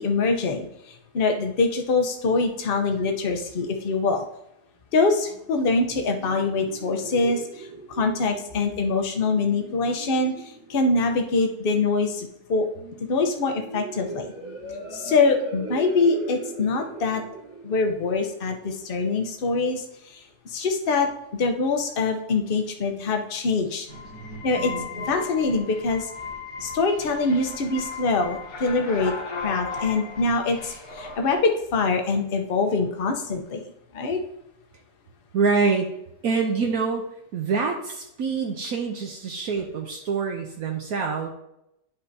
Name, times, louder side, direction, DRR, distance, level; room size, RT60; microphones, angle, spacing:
voice 1, 0.0-4.3 4.9-12.7 13.1-14.3 14.9-17.2 17.6-20.2 20.4-23.9 24.4-24.7 25.1-26.1 26.6-29.1 29.4-33.6 33.9-34.2, left 3 dB, 45° left, 4 dB, 0.8 m, -24 dB
sound 1, 5.3-19.2, right 3 dB, 40° right, 1.7 m, -39 dB
sound 2, 23.9-31.4, left 4 dB, 75° left, 1.8 m, -36 dB
voice 2, 35.3-35.9 36.2-37.0 37.3-41.3, right 5 dB, 70° right, 1 dB, 1.2 m, -25 dB
10.0 x 5.4 x 2.7 m, 0.82 s
omnidirectional pair, 1.7 m